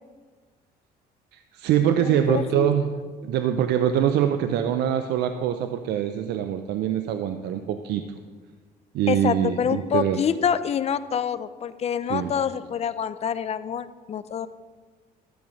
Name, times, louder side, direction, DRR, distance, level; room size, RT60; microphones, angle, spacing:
voice 1, 1.3-2.9 3.2-8.0 8.9-10.2 12.1-12.3, right 10 dB, 80° right, 8 dB, 0.6 m, -24 dB
voice 2, 2.0-2.7 9.1-14.5, left 8 dB, 40° left, 13 dB, 0.5 m, -26 dB
13.0 x 7.0 x 5.2 m, 1.5 s
cardioid pair, 110°, 17 cm